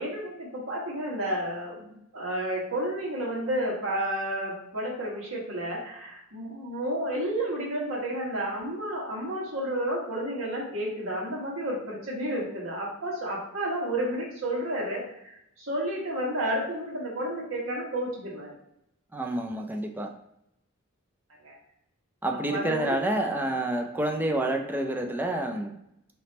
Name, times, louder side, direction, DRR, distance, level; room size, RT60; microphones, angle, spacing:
voice 1, 0.0-18.5 21.4-21.5 22.5-23.0, right 1 dB, 70° right, -4 dB, 1.4 m, -31 dB
voice 2, 19.1-20.2 22.2-25.8, right 1 dB, 10° right, 3 dB, 0.3 m, -28 dB
3.4 x 2.9 x 4.1 m, 0.79 s
head